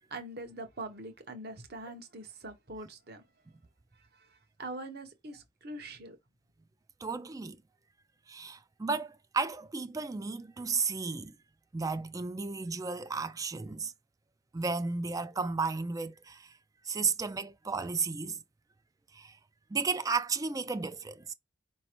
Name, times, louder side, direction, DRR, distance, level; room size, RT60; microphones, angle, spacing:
voice 1, 0.1-3.2 4.0-6.2, right 2 dB, 55° right, 1.1 m, -43 dB
voice 2, 7.0-7.6 8.3-11.3 11.7-13.9 14.5-16.6 16.8-18.4 19.1-19.4 19.7-21.3, right 4 dB, 20° right, 0.3 m, -33 dB
5.0 x 3.0 x 3.0 m
head